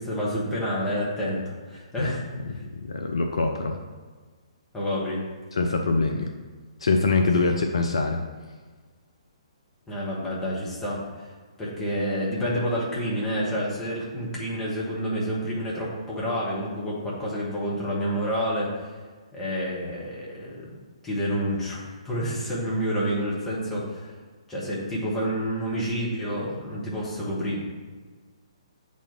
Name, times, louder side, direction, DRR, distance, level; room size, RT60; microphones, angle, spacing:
voice 1, 0.0-2.6 4.7-5.2 7.4-7.5 9.9-11.3 11.6-18.9 19.3-20.8 21.0-24.1 24.5-27.6, equal, 10° left, -7 dB, 1.6 m, -29 dB
voice 2, 2.6-3.8 5.5-6.3 6.8-8.2, left 3 dB, 60° left, 4 dB, 0.6 m, -24 dB
8.1 x 4.2 x 3.6 m, 1.4 s
figure-of-eight pair, 130°, 3 cm